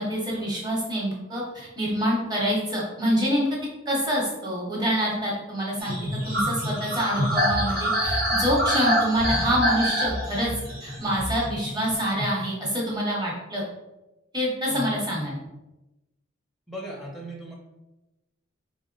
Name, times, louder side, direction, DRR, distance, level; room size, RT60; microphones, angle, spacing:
voice 1, 0.0-3.5 3.9-6.0 6.2-10.5 10.8-13.6 14.3-15.4, equal, 20° right, -4 dB, 1.0 m, -26 dB
sound 1, 5.8-12.3, equal, 50° right, 0.9 m, -26 dB
voice 2, 16.7-17.5, equal, ahead, -3 dB, 0.6 m, -37 dB
4.0 x 2.1 x 3.8 m, 1.0 s
head